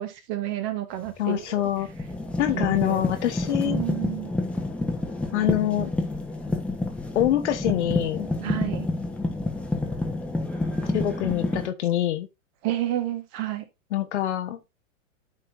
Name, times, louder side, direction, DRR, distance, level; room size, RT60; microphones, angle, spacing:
voice 1, 0.0-1.6 2.5-3.0 3.5-4.3 8.4-8.9 12.6-13.7, right 13 dB, 35° right, 1.4 m, -30 dB
sound 1, 1.1-1.2 1.7-11.7, left 2 dB, 5° left, 1.2 m, -29 dB
voice 2, 1.2-1.9 2.4-3.8 5.3-5.9 7.1-8.3 10.9-12.3 13.9-14.6, left 12 dB, 55° left, 1.2 m, -25 dB
13.0 x 4.4 x 2.6 m
figure-of-eight pair, 100°, 42 cm